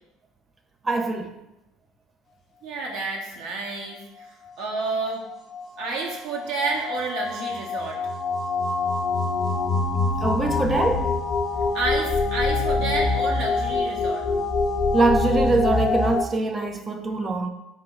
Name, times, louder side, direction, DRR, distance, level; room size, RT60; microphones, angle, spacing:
voice 1, 0.8-1.3 10.2-11.1 14.9-17.5, right 3 dB, 30° right, 0.3 m, -23 dB
voice 2, 2.6-5.2 5.8-8.0 11.7-14.2, right 3 dB, 65° right, 0.7 m, -30 dB
sound 1, 5.0-16.2, left 3 dB, 45° left, 0.4 m, -25 dB
3.1 x 2.1 x 3.7 m
hypercardioid pair, 70°, 0 cm